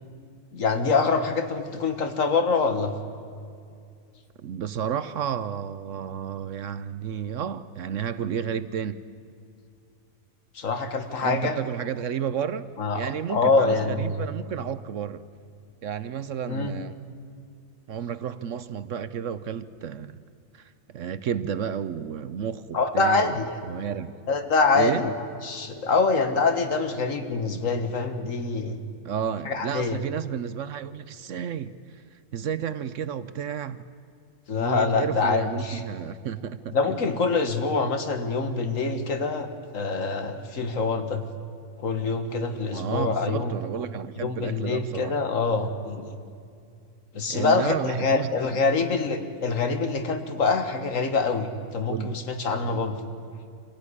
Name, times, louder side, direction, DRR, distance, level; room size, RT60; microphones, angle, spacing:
voice 1, 0.5-2.9 10.6-11.5 12.8-14.2 16.5-16.8 22.7-23.8 24.3-25.1 25.4-28.8 29.5-30.0 34.5-35.8 36.7-39.5 39.7-41.2 41.8-43.6 44.2-46.1 47.1-53.0, left 4 dB, 65° left, 8 dB, 2.0 m, -25 dB
voice 2, 4.4-9.0 11.2-12.7 12.9-15.2 15.8-17.0 17.9-20.2 20.5-23.4 23.6-24.1 24.7-25.1 29.0-32.0 32.3-33.8 34.6-37.0 42.7-45.2 47.3-48.6 51.9-52.2 52.6-52.8, right 8 dB, 65° right, 14 dB, 1.0 m, -32 dB
25.5 x 16.0 x 9.9 m, 2.3 s
omnidirectional pair, 1.5 m